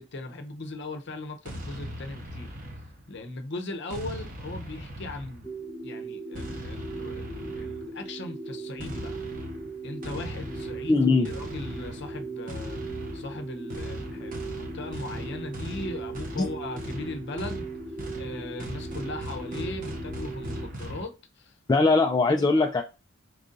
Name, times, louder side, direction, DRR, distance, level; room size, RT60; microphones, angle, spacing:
voice 1, 0.0-2.5 3.1-5.5 5.8-9.1 9.8-12.8 13.1-17.8 18.2-21.9 22.3-22.6, left 2 dB, 60° left, 0.7 m, -38 dB
sound 1, 1.4-3.2 3.9-5.6 6.3-8.0 8.8-21.1, equal, 45° right, 1.0 m, -39 dB
sound 2, 5.4-20.7, right 3 dB, ahead, 0.7 m, -38 dB
voice 2, 10.9-11.3 21.7-22.8, left 3 dB, 20° left, 0.3 m, -20 dB
4.6 x 2.6 x 3.8 m
head